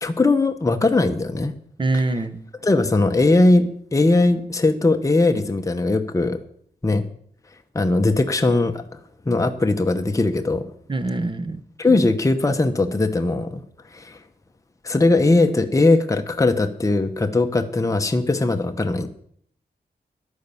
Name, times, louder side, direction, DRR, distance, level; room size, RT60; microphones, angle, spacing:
voice 1, 0.0-1.5 1.9-2.1 2.6-6.4 6.8-7.0 7.7-8.8 9.2-10.6 11.8-13.6 13.9-14.2 14.8-19.1, left 2 dB, 20° left, 6 dB, 0.9 m, -19 dB
voice 2, 1.8-2.4 10.9-11.6, right 2 dB, 30° right, 10 dB, 1.0 m, -24 dB
11.0 x 9.4 x 7.0 m, 0.63 s
wide cardioid pair, 145°, 16 cm